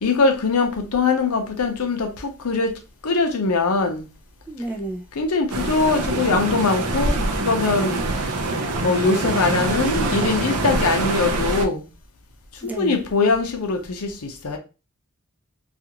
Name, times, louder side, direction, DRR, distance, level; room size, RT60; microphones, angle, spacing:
voice 1, 0.0-2.1 2.4-2.7 3.0-4.0 5.2-7.2 7.4-8.0 8.8-11.8 12.6-14.6, left 4 dB, 80° left, 0.6 m, -21 dB
voice 2, 4.5-5.0 7.2-8.1 12.6-13.0, right 1 dB, 5° right, 0.3 m, -33 dB
sound 1, 5.5-11.7, right 2 dB, 70° right, 0.5 m, -24 dB
2.5 x 2.4 x 2.8 m
head